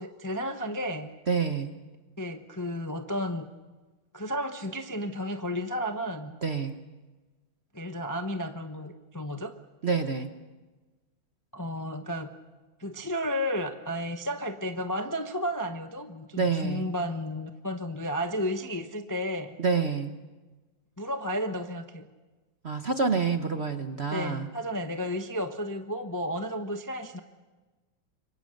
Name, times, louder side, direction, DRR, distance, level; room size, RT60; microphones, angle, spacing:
voice 1, 0.0-1.1 2.2-3.5 4.1-6.3 7.7-9.5 11.5-12.3 12.8-19.6 21.0-22.1 24.1-27.2, equal, 15° left, 6 dB, 0.7 m, -32 dB
voice 2, 1.3-1.7 6.4-6.8 9.8-10.3 16.4-16.9 19.6-20.2 22.6-24.5, right 5 dB, 40° right, 7 dB, 1.0 m, -27 dB
27.0 x 24.0 x 6.6 m, 1.2 s
omnidirectional pair, 2.2 m